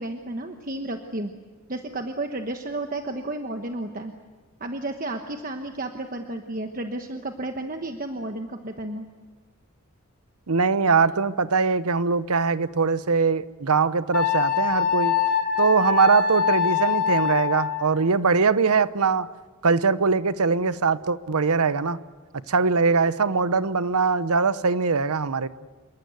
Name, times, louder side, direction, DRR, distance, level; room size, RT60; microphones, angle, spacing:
voice 1, 0.0-1.3 1.7-4.1 4.6-9.0, right 2 dB, 40° right, 5 dB, 1.2 m, -32 dB
voice 2, 10.5-15.1 15.6-19.3 19.6-22.0 22.5-25.5, right 4 dB, 85° right, 15 dB, 0.9 m, -22 dB
Wind instrument woodwind instrument, 14.1-17.9, left 8 dB, 40° left, 2.7 m, -23 dB
27.5 x 23.0 x 8.1 m, 1.4 s
head